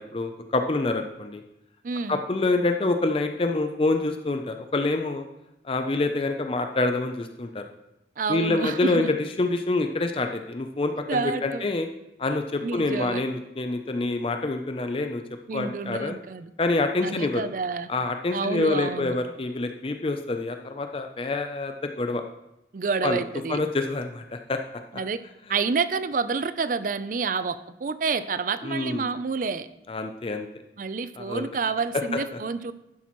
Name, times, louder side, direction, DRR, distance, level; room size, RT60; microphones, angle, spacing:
voice 1, 0.0-1.4 2.1-5.2 5.6-7.7 8.3-11.9 12.2-15.2 15.5-16.2 16.6-17.4 17.9-22.2 23.0-23.2 23.5-24.6 28.6-29.1 29.9-30.5 31.2-31.5 32.3-32.4, left 2 dB, 30° left, 6 dB, 0.5 m, -26 dB
voice 2, 1.8-2.2 8.2-9.1 11.1-11.6 12.6-13.2 15.5-16.5 17.0-17.9 18.3-19.2 22.7-23.6 24.9-25.2 25.5-29.7 30.8-32.7, right 4 dB, 45° right, 13 dB, 0.4 m, -28 dB
11.0 x 10.0 x 3.0 m, 0.89 s
head